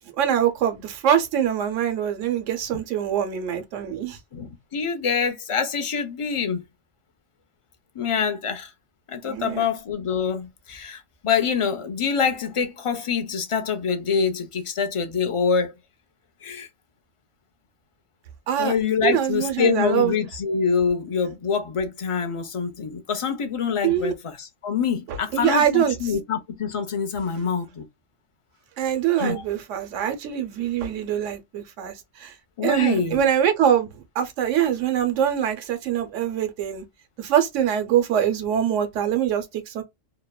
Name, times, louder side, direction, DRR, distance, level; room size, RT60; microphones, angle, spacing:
voice 1, 0.2-4.2 9.2-9.6 18.5-18.7 19.0-20.1 23.8-24.1 25.1-26.0 28.8-32.3 32.6-33.9 34.1-36.8 37.2-39.8, right 9 dB, 85° right, 1.1 m, -23 dB
voice 2, 4.3-6.6 7.9-8.7 9.1-15.7 16.4-16.7 18.6-27.8 29.2-29.4 32.6-33.2, left 6 dB, 45° left, 0.4 m, -25 dB
2.8 x 2.1 x 2.2 m
omnidirectional pair, 1.2 m